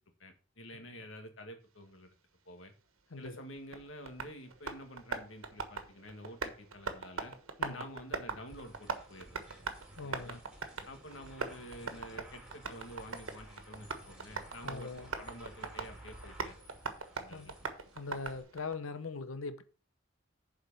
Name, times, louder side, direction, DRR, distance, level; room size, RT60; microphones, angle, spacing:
voice 1, 0.2-2.2 2.5-2.7 3.2-7.3 7.7-9.4 10.0-10.4 10.8-16.6 17.2-17.6, equal, 70° left, 2.0 m, -49 dB
voice 2, 3.1-3.4 7.6-7.8 10.0-10.4 14.6-15.1 17.3-17.5 17.9-19.6, left 3 dB, 90° left, 0.9 m, -41 dB
Tap, 3.2-18.7, right 4 dB, 85° right, 1.3 m, -42 dB
sound 1, 8.5-18.4, right 1 dB, 5° right, 2.8 m, -55 dB
7.5 x 5.0 x 6.8 m
head